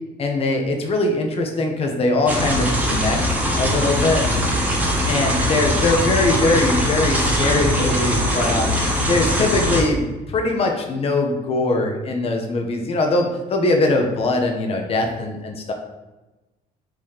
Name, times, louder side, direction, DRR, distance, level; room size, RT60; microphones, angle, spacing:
voice 1, 0.2-4.2 5.1-8.7 9.1-15.7, left 2 dB, 35° left, 3 dB, 0.7 m, -21 dB
sound 1, 2.3-9.8, equal, 10° right, 1.1 m, -21 dB
3.7 x 2.9 x 4.8 m, 1.1 s
cardioid pair, 110°, 17 cm